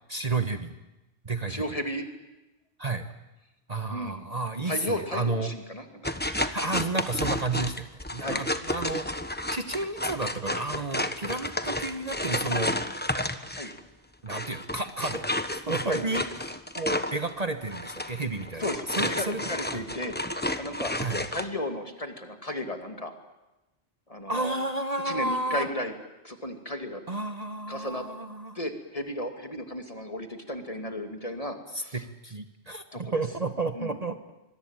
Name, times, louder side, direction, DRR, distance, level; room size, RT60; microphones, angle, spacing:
voice 1, 0.1-0.7 1.2-1.6 2.8-3.1 3.7-5.5 6.5-9.1 9.5-12.8 14.2-15.3 15.7-18.7 19.0-19.8 21.0-21.2 24.3-25.7 27.1-28.6 31.7-34.2, right 3 dB, 35° right, 8 dB, 1.3 m, -31 dB
voice 2, 1.5-2.1 3.9-4.2 4.6-6.1 6.4-6.7 8.2-8.5 13.5-13.7 15.9-16.0 18.6-20.9 21.3-23.1 24.1-24.5 25.0-25.9 26.2-27.0 27.7-28.1 28.5-32.0 32.9-33.1 33.7-33.9, left 1 dB, 30° left, 6 dB, 2.6 m, -34 dB
sound 1, 6.0-13.8 14.3-21.5, left 1 dB, 10° left, 1.1 m, -31 dB
25.5 x 22.0 x 9.0 m, 1.0 s
omnidirectional pair, 1.1 m